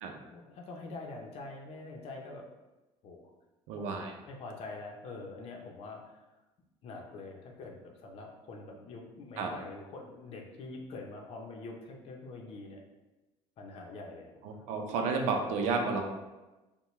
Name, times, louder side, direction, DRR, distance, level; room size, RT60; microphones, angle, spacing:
voice 1, 0.3-2.5 3.0-3.2 3.7-4.0 4.3-6.2 6.8-12.8 13.6-14.6, left 3 dB, 55° left, 1 dB, 0.7 m, -45 dB
voice 2, 3.7-4.1 9.4-9.5 14.4-16.0, right 4 dB, 85° right, 3 dB, 0.6 m, -31 dB
5.6 x 2.2 x 3.1 m, 1.1 s
cardioid pair, 140°, 12 cm